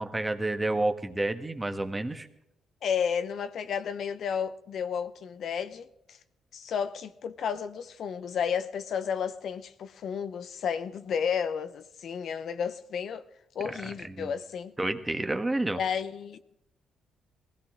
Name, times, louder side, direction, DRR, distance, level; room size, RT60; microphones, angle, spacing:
voice 1, 0.0-2.3 13.7-14.3 14.8-15.8, right 2 dB, 15° right, 1.3 m, -30 dB
voice 2, 2.8-6.2 6.5-13.3 13.5-14.7 15.7-16.4, left 7 dB, 65° left, 0.8 m, -32 dB
20.5 x 16.5 x 3.7 m
cardioid pair, 90°, 0 cm